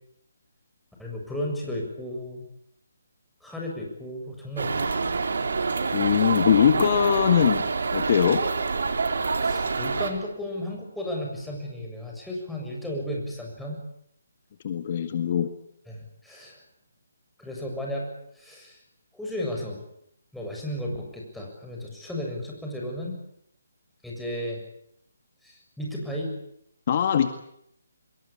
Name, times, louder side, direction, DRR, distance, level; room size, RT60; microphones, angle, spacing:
voice 1, 1.0-2.4 3.4-4.9 9.3-13.8 15.9-16.6 17.4-18.1 18.4-18.8 19.1-19.8 20.3-23.2 24.0-24.6 25.4-26.3, left 1 dB, ahead, -2 dB, 7.3 m, -34 dB
sound 1, 4.6-10.1, right 4 dB, 70° right, 4.3 m, -27 dB
voice 2, 5.9-8.4 14.6-15.5 26.9-27.3, left 8 dB, 40° left, 8 dB, 1.9 m, -22 dB
26.0 x 22.5 x 8.8 m, 0.74 s
hypercardioid pair, 160°, 0 cm